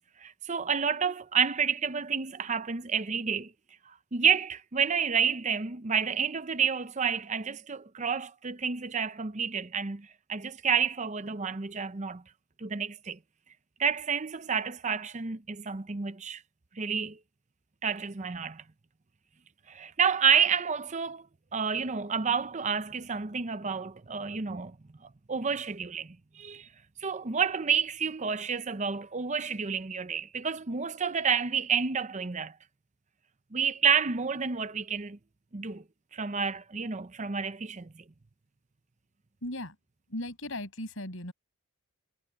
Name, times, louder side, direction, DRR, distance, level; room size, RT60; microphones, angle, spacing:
voice 1, 0.2-3.5 3.9-12.2 12.6-13.2 13.8-16.4 16.8-17.2 17.8-18.6 19.7-21.3 21.5-24.8 25.0-26.7 27.0-32.5 33.5-35.2 35.5-35.8 36.1-38.0, right 6 dB, 35° right, 0.7 m, -29 dB
voice 2, 39.4-39.8 40.1-41.3, left 1 dB, 65° left, 6.4 m, -37 dB
head